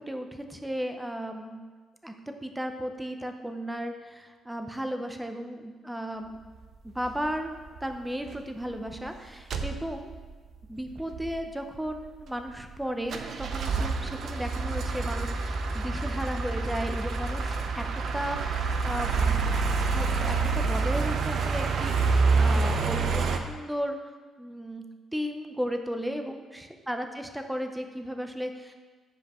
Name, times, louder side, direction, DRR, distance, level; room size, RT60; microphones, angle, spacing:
voice 1, 0.0-1.6 2.0-6.4 6.8-7.5 7.8-10.1 10.7-17.8 18.1-24.8 25.1-28.7, equal, 5° right, 5 dB, 0.6 m, -35 dB
sound 1, 7.1-7.3 7.8-8.0 8.3-8.4 8.6-9.1 9.5-10.3 10.6-10.7 10.9-11.4 11.9-12.8 13.1-23.4, right 4 dB, 65° right, 0.6 m, -27 dB
9.6 x 5.1 x 3.0 m, 1.4 s
cardioid pair, 90°, 0 cm